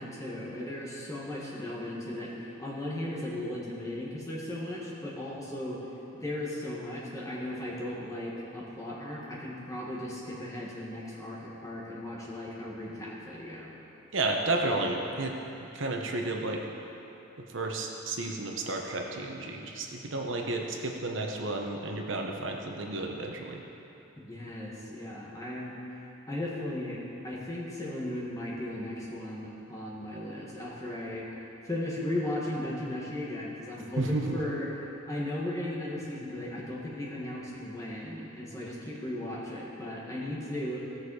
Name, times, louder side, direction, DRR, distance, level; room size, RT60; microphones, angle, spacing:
voice 1, 0.0-5.8 6.1-13.7 19.6-19.8 24.2-25.8 26.3-31.2 31.6-34.6 35.1-40.8, left 1 dB, 15° left, -5 dB, 1.6 m, -36 dB
voice 2, 14.1-16.6 17.5-23.6 34.0-34.4, right 2 dB, 65° right, 1 dB, 1.0 m, -32 dB
16.0 x 6.5 x 4.9 m, 3.0 s
head